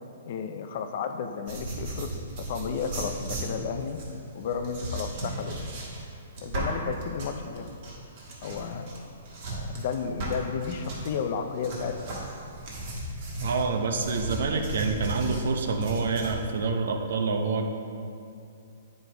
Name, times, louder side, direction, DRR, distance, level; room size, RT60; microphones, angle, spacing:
voice 1, 0.3-4.0 4.3-5.8 6.4-7.8 8.4-8.9 9.5-12.3, left 6 dB, 40° left, 7 dB, 0.4 m, -33 dB
sound 1, 1.5-11.1 11.6-16.3, right 1 dB, 35° right, 1.5 m, -36 dB
voice 2, 13.4-17.7, right 4 dB, 60° right, 4 dB, 0.7 m, -27 dB
9.1 x 5.3 x 3.4 m, 2.6 s
hypercardioid pair, 175°, 0 cm